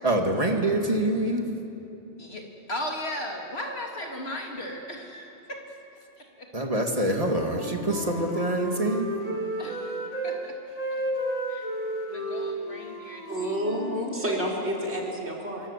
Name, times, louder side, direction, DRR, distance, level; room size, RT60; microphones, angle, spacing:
voice 1, 0.0-1.5 6.5-9.1, right 1 dB, 30° right, 2 dB, 2.5 m, -25 dB
voice 2, 2.2-5.6 6.2-6.5 6.7-6.8 9.6-10.0 10.2-10.6 11.5-11.7 12.1-13.6, left 1 dB, 65° left, 0 dB, 3.4 m, -36 dB
Wind instrument woodwind instrument, 7.1-10.4 10.7-14.4, equal, 30° left, 3.5 m, -33 dB
voice 3, 13.3-15.7, equal, 75° right, -2 dB, 4.6 m, -29 dB
25.5 x 23.5 x 8.4 m, 2.8 s
omnidirectional pair, 1.2 m